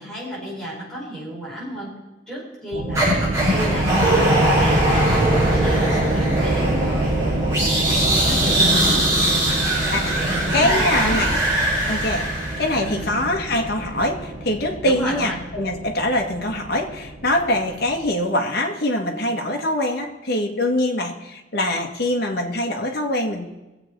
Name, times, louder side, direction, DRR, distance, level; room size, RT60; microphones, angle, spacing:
voice 1, 0.0-1.9 2.3-7.1 7.5-9.1 10.2-11.3 12.8-13.3 14.8-15.4, equal, 5° left, -6 dB, 4.8 m, -32 dB
sound 1, 2.7-18.1, right 1 dB, 50° right, 1.4 m, -26 dB
sound 2, 2.9-13.1, right 1 dB, 15° right, 5.9 m, -21 dB
voice 2, 10.5-11.3 11.9-23.5, left 1 dB, 60° left, 1 dB, 1.8 m, -23 dB
22.0 x 8.1 x 4.7 m, 1.0 s
head